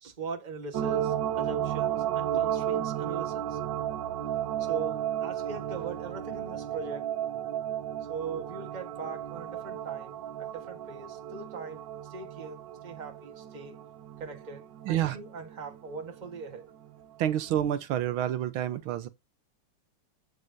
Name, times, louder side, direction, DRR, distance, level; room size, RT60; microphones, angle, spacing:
voice 1, 0.0-3.6 4.6-7.1 8.1-11.8 12.1-13.8 14.2-16.7, right 5 dB, 25° right, 1.4 m, -41 dB
sound 1, 0.7-16.4 16.8-16.9, right 10 dB, 70° right, 1.4 m, -33 dB
voice 2, 14.9-15.2 17.2-19.1, right 11 dB, 85° right, 1.7 m, -28 dB
8.9 x 7.8 x 2.7 m
omnidirectional pair, 2.2 m